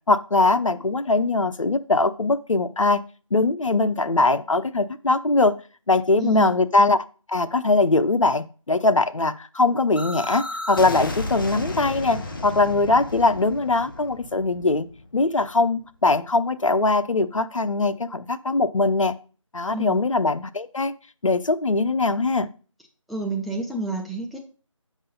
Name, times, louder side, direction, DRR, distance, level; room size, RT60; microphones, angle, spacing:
voice 1, 0.1-3.0 3.3-5.5 5.9-7.0 7.3-14.9 15.1-19.1 19.5-20.9 21.2-22.5, left 3 dB, 70° left, 12 dB, 0.7 m, -21 dB
voice 2, 6.2-6.5 19.7-20.0 23.1-24.4, right 2 dB, ahead, -1 dB, 0.3 m, -29 dB
sound 1, 10.0-15.7, left 2 dB, 40° left, 1.0 m, -33 dB
7.5 x 6.2 x 3.9 m, 0.38 s
figure-of-eight pair, 165°, 17 cm